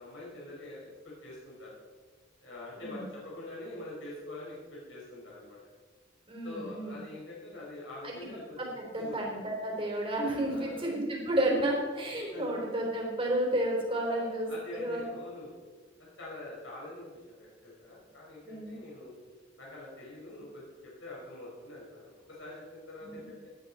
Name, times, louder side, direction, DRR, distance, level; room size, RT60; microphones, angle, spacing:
voice 1, 0.0-1.7 2.4-5.6 6.4-9.2 10.5-10.9 12.3-12.5 14.1-15.5 16.0-19.2 19.6-23.5, left 2 dB, 75° left, -6 dB, 5.5 m, -45 dB
voice 2, 6.3-7.0 8.0-8.2 8.6-15.0 18.4-18.8 23.0-23.2, right 1 dB, 30° right, -2 dB, 4.0 m, -31 dB
18.0 x 12.0 x 4.4 m, 1.5 s
head